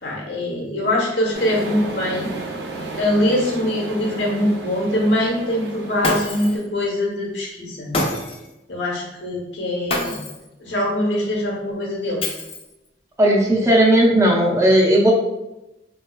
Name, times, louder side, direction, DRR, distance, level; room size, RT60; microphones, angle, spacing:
voice 1, 0.0-2.3 3.0-7.9 8.7-10.2 10.6-12.2, left 1 dB, 90° left, -3 dB, 1.0 m, -23 dB
sound 1, 1.3-6.6, right 2 dB, 75° right, 0.6 m, -33 dB
Shatter, 6.0-6.6 7.9-8.5 9.9-10.5 12.2-12.9, left 2 dB, 35° left, 0.5 m, -26 dB
voice 2, 13.2-15.1, right 1 dB, 15° right, -2 dB, 0.5 m, -15 dB
3.9 x 2.3 x 2.2 m, 0.96 s
head